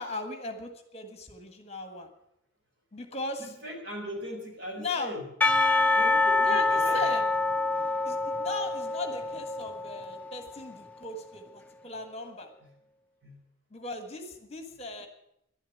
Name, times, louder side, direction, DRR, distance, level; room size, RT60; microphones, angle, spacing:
voice 1, 0.0-2.1 2.9-3.5 4.8-5.1 6.4-7.3 8.0-12.5 13.7-15.1, left 2 dB, 30° left, 7 dB, 1.5 m, -37 dB
voice 2, 3.4-5.3 5.9-7.0 12.6-12.7 13.2-13.4, equal, 60° right, 0 dB, 5.1 m, -39 dB
Percussion / Church bell, 5.4-10.5, left 3 dB, 5° left, 0.5 m, -26 dB
11.5 x 11.0 x 9.8 m, 0.80 s
head